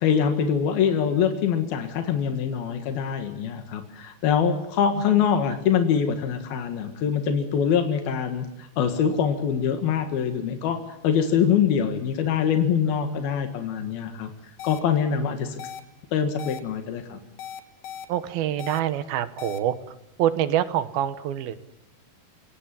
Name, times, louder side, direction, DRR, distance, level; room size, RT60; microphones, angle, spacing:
voice 1, 0.0-14.3 14.6-15.6 16.1-17.2, left 7 dB, 85° left, 7 dB, 3.6 m, -24 dB
sound 1, 14.6-14.8 15.6-15.8 16.4-16.6 17.4-18.1 18.6-18.8 19.4-19.6, left 9 dB, 65° left, 2.8 m, -37 dB
voice 2, 18.1-19.8 20.2-21.6, right 11 dB, 90° right, 13 dB, 3.1 m, -25 dB
30.0 x 17.0 x 7.6 m, 0.85 s
omnidirectional pair, 4.2 m